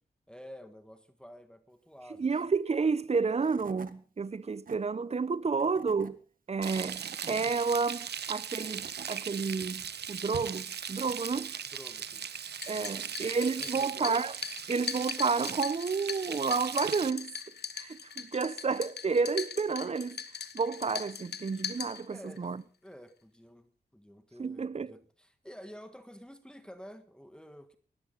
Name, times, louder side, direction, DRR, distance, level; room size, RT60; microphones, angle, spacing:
voice 1, 0.3-2.3 11.7-12.3 12.7-13.1 13.6-14.1 22.1-22.5 22.8-27.7, equal, 5° left, 1.6 m, -50 dB
voice 2, 2.2-6.2 6.5-11.5 12.7-14.3 14.7-17.3 17.8-20.2 20.5-22.6 24.4-24.9, right 4 dB, 40° right, 0.8 m, -30 dB
Tools / Wood, 3.0-3.1 3.4-3.9 4.4-4.8 5.5-6.1 6.7-7.5 8.3-9.1, right 5 dB, 55° right, 1.5 m, -48 dB
Frying (food), 6.6-17.1, right 8 dB, 80° right, 1.0 m, -39 dB
sound 1, 12.5-22.4, left 7 dB, 80° left, 1.5 m, -41 dB
19.5 x 14.0 x 4.0 m
wide cardioid pair, 95°, 17 cm